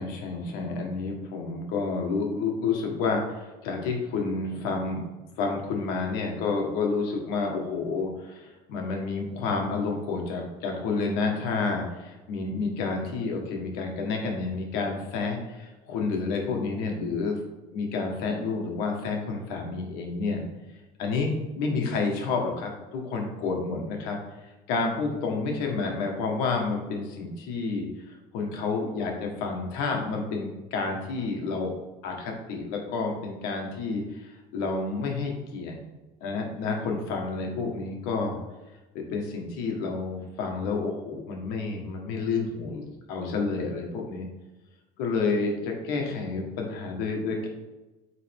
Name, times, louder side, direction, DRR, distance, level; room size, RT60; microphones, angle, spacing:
voice 1, 0.0-5.0 5.4-17.4 17.7-20.4 21.0-24.2 24.7-27.9 28.3-31.7 32.0-35.8 36.2-38.4 38.9-42.8 43.1-44.2 45.0-47.5, left 4 dB, 85° left, 1 dB, 1.6 m, -29 dB
8.3 x 3.8 x 3.7 m, 1.1 s
cardioid pair, 155°, 15 cm